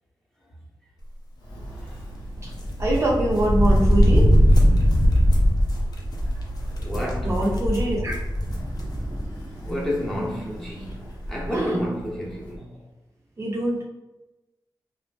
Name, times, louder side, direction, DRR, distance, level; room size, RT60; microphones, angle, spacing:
Walk footsteps, 1.3-12.6, right 1 dB, 85° left, 1.1 m, -40 dB
sound 1, 2.6-9.3 9.7-9.8 10.9-11.0 11.2-11.5, equal, 55° left, 0.5 m, -20 dB
voice 1, 2.8-4.3 7.2-8.1 8.6-9.7 11.5-11.8 13.4-13.8, right 1 dB, 35° right, 0.4 m, -25 dB
voice 2, 6.8-7.3 9.6-11.0 11.3-12.8, equal, 5° left, 0.7 m, -30 dB
2.3 x 2.0 x 3.2 m
wide cardioid pair, 140°, 8 cm